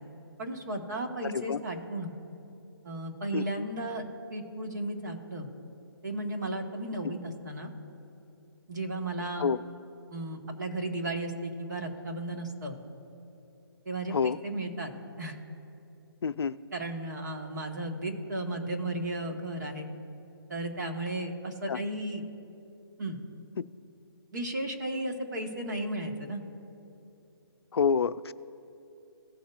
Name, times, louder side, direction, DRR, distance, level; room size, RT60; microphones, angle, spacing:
voice 1, 0.4-2.1 2.8-4.0 4.3-5.5 6.0-7.7 8.7-9.4 10.1-12.8 13.8-14.9 15.2-15.3 16.7-19.9 20.5-22.2 23.0-23.2 24.3-26.4, right 1 dB, 45° right, 2 dB, 1.6 m, -34 dB
voice 2, 1.2-1.6 3.3-3.7 7.0-7.1 9.4-9.6 14.1-14.4 16.2-16.6 21.7-21.8 27.7-28.3, left 6 dB, 80° left, 14 dB, 0.5 m, -28 dB
17.5 x 7.1 x 2.5 m, 2.8 s
hypercardioid pair, 180°, 13 cm